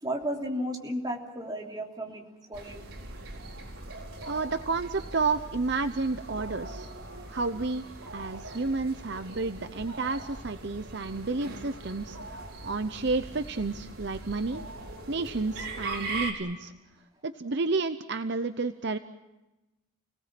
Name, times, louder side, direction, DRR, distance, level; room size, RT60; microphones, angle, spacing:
voice 1, 0.0-2.8, equal, 20° right, 0 dB, 3.1 m, -34 dB
sound 1, 2.5-16.3, right 2 dB, 85° right, 4.6 m, -41 dB
voice 2, 4.3-6.9 7.3-7.8 8.1-14.6 15.1-16.7 17.2-19.0, right 3 dB, 50° right, 10 dB, 0.8 m, -31 dB
30.0 x 18.5 x 7.6 m, 1.0 s
head